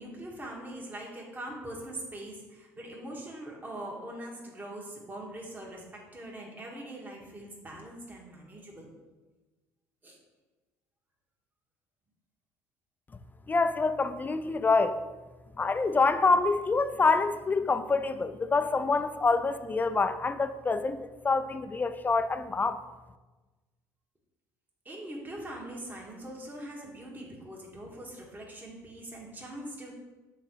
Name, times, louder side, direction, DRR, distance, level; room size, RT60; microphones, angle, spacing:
voice 1, 0.0-8.9 10.0-10.2 24.8-29.9, right 1 dB, 20° right, 1.6 m, -42 dB
voice 2, 13.5-15.0 15.6-22.8, left 4 dB, 20° left, 0.5 m, -26 dB
6.6 x 3.8 x 4.5 m
supercardioid pair, 75°, 8 cm